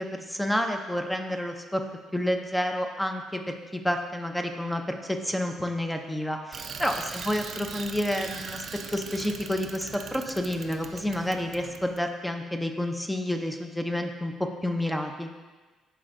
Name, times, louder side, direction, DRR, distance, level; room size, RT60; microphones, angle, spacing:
voice 1, 0.0-1.8 2.1-8.6 8.9-14.3 14.6-15.3, left 1 dB, 5° left, 4 dB, 0.5 m, -29 dB
Bicycle, 6.5-12.0, right 6 dB, 50° right, 0.4 m, -40 dB
11.0 x 4.4 x 2.6 m, 1.3 s
cardioid pair, 130°, 0 cm